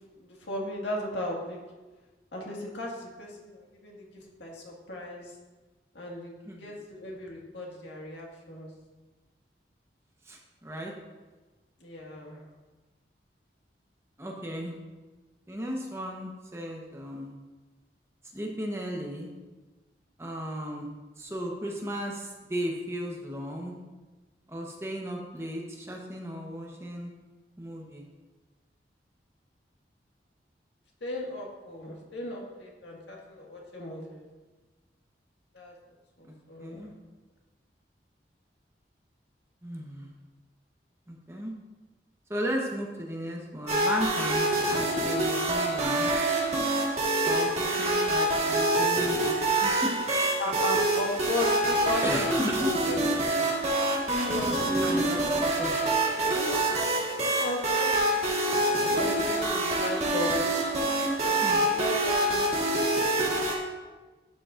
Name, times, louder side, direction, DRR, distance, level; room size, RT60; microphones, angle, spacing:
voice 1, 0.2-1.6 2.3-5.3 5.9-8.7 11.8-12.4 31.0-34.3 35.5-35.7 36.2-36.9 50.4-53.5 54.2-55.5 56.3-60.5 61.2-62.9, left 1 dB, 85° left, -2 dB, 1.9 m, -36 dB
voice 2, 10.3-10.9 14.2-14.8 15.5-17.4 18.3-19.3 20.2-20.9 21.2-23.7 24.5-27.1 27.6-28.1 36.6-36.9 39.6-40.1 41.1-41.5 42.3-46.3 47.2-49.3 49.6-50.0 52.0-52.7 54.8-55.7 61.4-61.8, equal, 15° right, -1 dB, 1.0 m, -35 dB
sound 1, 43.7-63.5, right 1 dB, 35° right, 1.6 m, -26 dB
11.5 x 7.7 x 2.5 m, 1.2 s
head